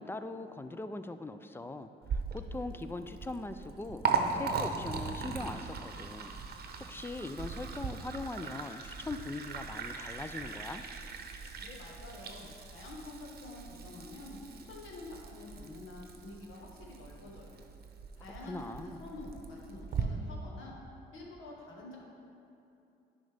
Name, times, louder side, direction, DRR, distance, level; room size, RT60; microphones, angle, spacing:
voice 1, 0.0-4.0 4.3-6.3 6.9-10.8 18.4-19.0, left 2 dB, 10° left, 10 dB, 0.3 m, -41 dB
Liquid, 2.0-20.0, right 5 dB, 50° right, 0.8 m, -39 dB
voice 2, 11.6-17.6 18.2-20.7 21.1-22.0, left 2 dB, 90° left, -3 dB, 1.4 m, -47 dB
10.5 x 5.3 x 3.4 m, 2.7 s
cardioid pair, 90°, 20 cm